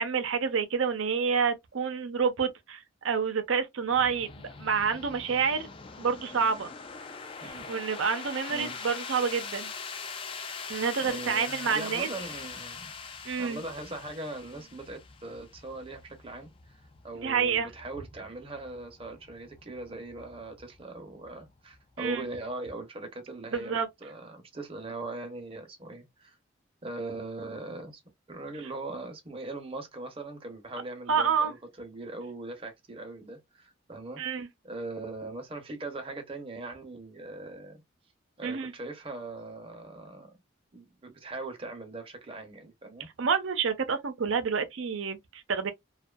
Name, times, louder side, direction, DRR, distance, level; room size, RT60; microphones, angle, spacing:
voice 1, 0.0-4.3 4.6-5.7 6.0-6.7 7.7-9.7 10.7-12.1 13.2-13.6 17.2-17.7 22.0-22.3 23.5-23.9 31.1-31.5 34.2-34.5 38.4-38.7 43.2-45.7, right 6 dB, 85° right, 0.6 m, -28 dB
sound 1, 3.9-22.5, left 5 dB, 25° left, 0.3 m, -43 dB
voice 2, 11.0-12.9 13.4-26.4 26.8-28.0 28.3-34.2 34.6-37.8 38.4-40.4 40.7-43.1, right 2 dB, 30° right, 0.7 m, -40 dB
2.6 x 2.3 x 2.2 m
head